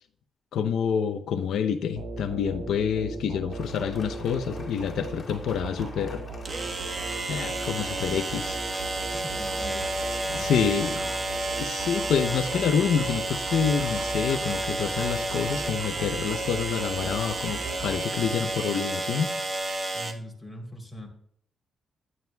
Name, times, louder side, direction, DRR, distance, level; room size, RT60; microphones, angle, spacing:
voice 1, 0.5-6.2 7.3-8.6 10.3-11.0 11.6-19.3, left 7 dB, 75° left, 7 dB, 0.7 m, -27 dB
sound 1, 2.0-18.6, right 3 dB, 60° right, 2.6 m, -38 dB
Applause, 3.5-12.5, left 3 dB, 30° left, 2.7 m, -50 dB
sound 2, 4.4-4.5 6.4-20.1, right 2 dB, 35° right, 1.4 m, -31 dB
voice 2, 9.1-10.0 10.2-10.9 19.9-21.1, left 1 dB, ahead, 1 dB, 3.4 m, -41 dB
21.0 x 11.0 x 2.3 m, 0.65 s
cardioid pair, 145°, 0 cm